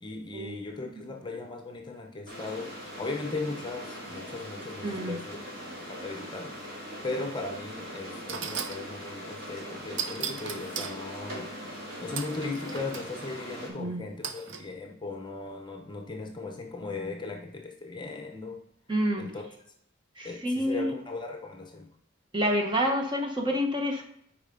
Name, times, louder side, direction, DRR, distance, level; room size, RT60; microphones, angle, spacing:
voice 1, 0.0-5.4 5.9-6.5 7.0-11.5 12.0-18.6 19.1-19.4 20.2-21.9, left 3 dB, 25° left, 3 dB, 0.7 m, -37 dB
sound 1, 2.3-13.7, equal, 50° right, 2.7 m, -41 dB
voice 2, 4.8-5.2 13.7-14.0 18.9-19.3 20.2-20.9 22.3-24.0, equal, 25° right, 2 dB, 0.9 m, -28 dB
sound 2, 7.6-7.7 8.3-8.8 10.0-11.0 12.2-13.1 14.2-14.6, right 6 dB, 70° right, 0.7 m, -36 dB
9.0 x 4.9 x 3.8 m, 0.74 s
head